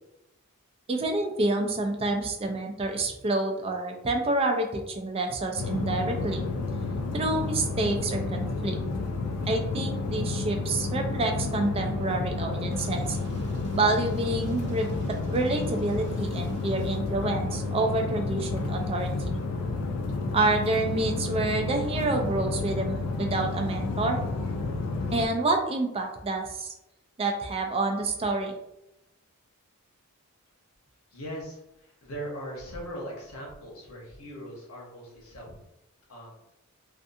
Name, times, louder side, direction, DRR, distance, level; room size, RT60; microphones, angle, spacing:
voice 1, 0.9-6.5 7.1-8.8 9.5-13.2 13.7-19.3 20.3-24.2 25.1-26.7 27.2-28.6, right 2 dB, 25° right, 4 dB, 0.3 m, -28 dB
sound 1, 5.6-25.3, left 3 dB, 80° left, 0.4 m, -31 dB
sound 2, 12.7-18.0, right 2 dB, 55° right, 0.7 m, -48 dB
voice 2, 31.1-35.5 36.1-36.3, equal, 65° left, -3 dB, 0.9 m, -40 dB
2.4 x 2.4 x 2.5 m, 0.88 s
head